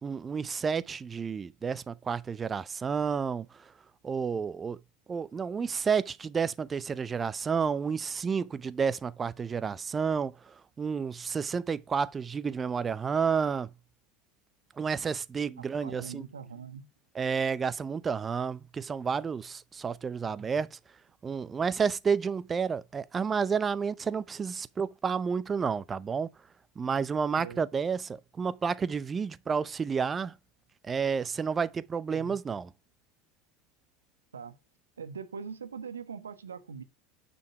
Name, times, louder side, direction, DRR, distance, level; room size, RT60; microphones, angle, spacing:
voice 1, 0.0-3.5 4.0-4.8 5.1-13.7 14.8-16.2 17.1-20.8 21.2-26.3 26.8-30.3 30.8-32.7, right 6 dB, 25° right, 0.6 m, -30 dB
voice 2, 15.6-16.9 27.3-27.6 32.1-32.4 34.3-34.5 35.0-36.8, right 6 dB, 85° right, 1.2 m, -42 dB
9.4 x 5.3 x 4.8 m
hypercardioid pair, 80°, 0 cm